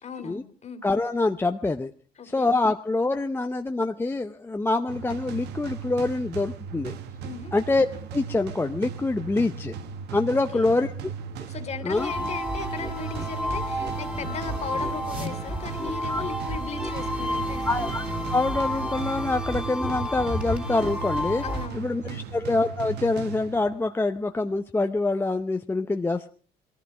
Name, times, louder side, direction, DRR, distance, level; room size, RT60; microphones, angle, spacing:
voice 1, 0.0-0.8 2.2-2.5 7.2-7.5 10.5-10.7 11.5-17.7 21.4-22.2, left 6 dB, 40° left, 9 dB, 2.4 m, -37 dB
voice 2, 0.8-1.9 2.2-6.9 7.5-7.9 8.1-9.7 10.1-11.1 11.8-12.1 16.1-16.2 17.6-18.0 18.3-21.4 21.7-26.3, left 2 dB, 15° left, 6 dB, 0.7 m, -25 dB
sound 1, 4.9-23.9, right 7 dB, 80° right, 1.3 m, -37 dB
sound 2, 11.9-21.7, equal, 10° right, 2.8 m, -31 dB
20.0 x 14.5 x 4.8 m, 0.41 s
cardioid pair, 110°, 17 cm